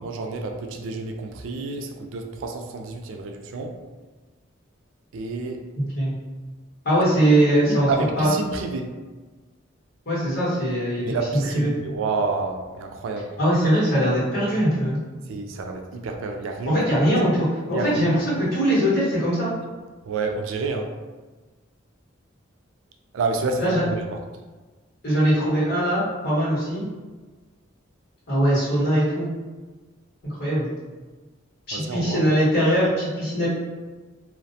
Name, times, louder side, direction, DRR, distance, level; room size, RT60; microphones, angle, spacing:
voice 1, 0.0-3.7 5.1-5.6 7.6-8.9 11.0-13.3 15.3-16.8 17.7-18.0 20.1-20.9 23.1-24.2 31.7-32.2, right 3 dB, 80° right, 4 dB, 0.3 m, -29 dB
voice 2, 5.8-6.1 6.8-7.9 8.2-8.3 10.0-11.7 13.4-15.0 16.6-19.5 23.6-23.8 25.0-26.8 28.3-29.3 30.2-30.7 31.7-33.5, equal, 50° left, -9 dB, 1.3 m, -21 dB
2.4 x 2.1 x 2.6 m, 1.3 s
head